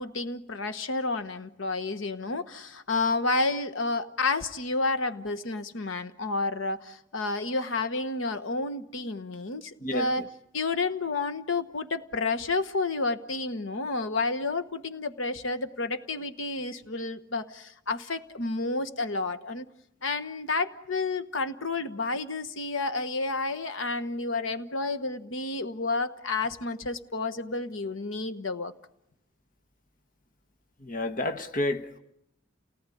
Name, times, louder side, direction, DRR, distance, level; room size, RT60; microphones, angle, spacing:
voice 1, 0.0-10.2 10.5-19.7 20.0-28.7, left 3 dB, 85° left, 1.2 m, -30 dB
voice 2, 30.8-32.0, left 1 dB, 40° left, 1.2 m, -30 dB
30.0 x 18.5 x 10.0 m
head